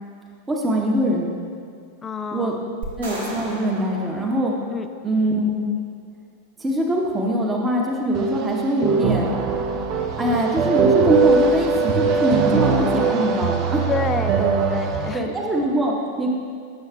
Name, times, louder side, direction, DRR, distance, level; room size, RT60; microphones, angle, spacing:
voice 1, 0.5-1.3 2.3-2.6 3.0-4.5 5.0-5.6 6.6-9.3 10.2-13.9 15.1-16.3, equal, 15° right, 0 dB, 0.9 m, -22 dB
voice 2, 2.0-2.7 4.7-4.9 13.9-15.2, left 5 dB, 20° left, 9 dB, 0.3 m, -28 dB
sound 1, 2.8-5.2, right 1 dB, 70° right, 1.4 m, -36 dB
sound 2, 8.1-15.1, right 5 dB, 35° right, 0.5 m, -21 dB
8.9 x 6.3 x 2.3 m, 2.3 s
figure-of-eight pair, 90°, 0 cm